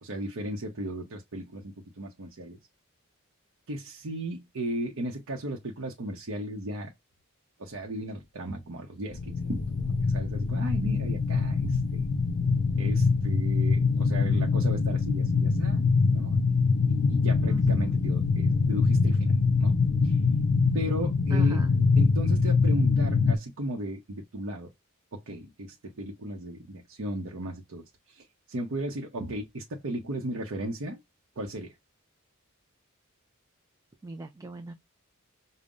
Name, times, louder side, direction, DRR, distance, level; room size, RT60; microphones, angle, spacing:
voice 1, 0.0-2.6 3.7-6.9 7.6-12.0 12.8-15.8 16.1-16.6 17.1-19.3 19.6-19.8 20.0-20.2 20.7-21.6 22.0-24.7 25.1-31.0 31.4-31.7, right 1 dB, 65° right, 0.7 m, -35 dB
sound 1, 9.1-23.4, left 4 dB, 60° left, 0.5 m, -24 dB
voice 2, 17.5-18.0 21.3-21.7 34.0-34.7, right 3 dB, 15° right, 0.3 m, -40 dB
5.3 x 2.1 x 2.4 m
head